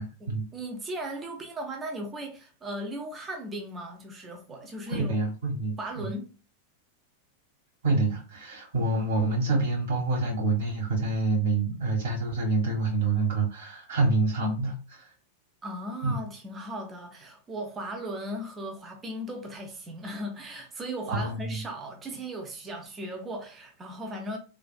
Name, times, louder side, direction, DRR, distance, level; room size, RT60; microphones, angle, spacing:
voice 1, 0.0-0.4 4.9-5.7 7.8-15.1 16.0-16.1 21.1-21.6, right 3 dB, 60° right, 1.2 m, -27 dB
voice 2, 0.5-5.1 5.8-6.3 15.6-24.4, right 1 dB, 20° right, 0.6 m, -37 dB
3.3 x 2.4 x 2.3 m
figure-of-eight pair, 90°, 0 cm